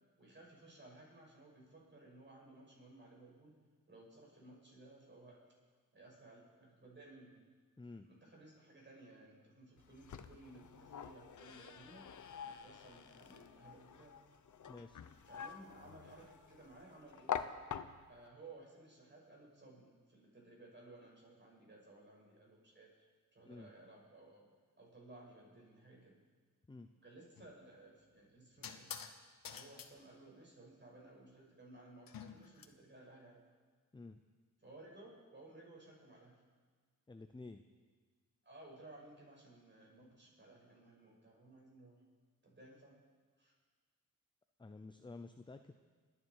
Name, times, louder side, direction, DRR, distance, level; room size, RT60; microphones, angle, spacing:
voice 1, 0.2-3.5 3.9-5.4 5.9-7.4 8.0-12.1 12.4-14.1 15.2-17.5 18.1-22.9 23.3-24.5 24.8-26.1 27.0-28.9 29.4-33.4 34.6-36.4 38.4-42.0 42.4-42.9 43.4-43.5, right 2 dB, 30° right, -3 dB, 6.2 m, -58 dB
sound 1, 9.8-18.3, left 8 dB, 60° left, 0.9 m, -47 dB
voice 2, 14.7-15.0 23.5-23.7 26.7-26.9 28.6-28.7 33.9-34.2 37.1-37.6 44.6-45.8, left 3 dB, 15° left, 8 dB, 0.6 m, -51 dB
sound 2, 27.4-27.6 28.6-29.2 29.4-29.9 32.1-32.7, left 7 dB, 75° left, 1.2 m, -48 dB
29.5 x 10.0 x 4.8 m, 1.5 s
cardioid pair, 95°, 34 cm